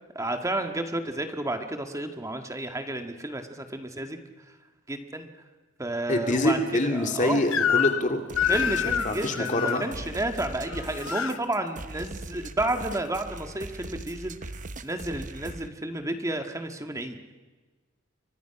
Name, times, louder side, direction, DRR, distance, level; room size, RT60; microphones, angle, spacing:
voice 1, 0.1-4.2 4.9-5.3 5.8-7.4 8.5-14.5 14.8-17.2, right 1 dB, 15° right, 6 dB, 1.7 m, -31 dB
voice 2, 6.1-8.2 8.8-9.8, left 1 dB, 40° left, 4 dB, 2.2 m, -25 dB
Crying sobbing / Screech, 7.5-8.1 8.4-9.9 10.7-11.4, left 8 dB, 80° left, 1.0 m, -27 dB
sound 1, 8.3-15.7, right 2 dB, 40° right, 1.0 m, -40 dB
29.5 x 24.0 x 5.9 m, 1.3 s
head